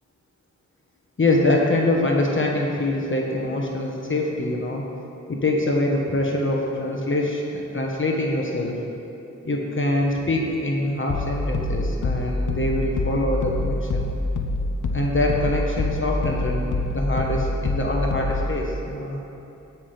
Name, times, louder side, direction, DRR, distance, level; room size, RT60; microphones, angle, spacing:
voice 1, 1.2-4.8 5.3-8.8 9.4-14.1 14.9-19.2, left 1 dB, 40° left, -1 dB, 1.3 m, -24 dB
sound 1, 11.1-18.6, left 2 dB, 85° left, 0.7 m, -26 dB
17.5 x 6.0 x 3.4 m, 2.9 s
cardioid pair, 50°, 30 cm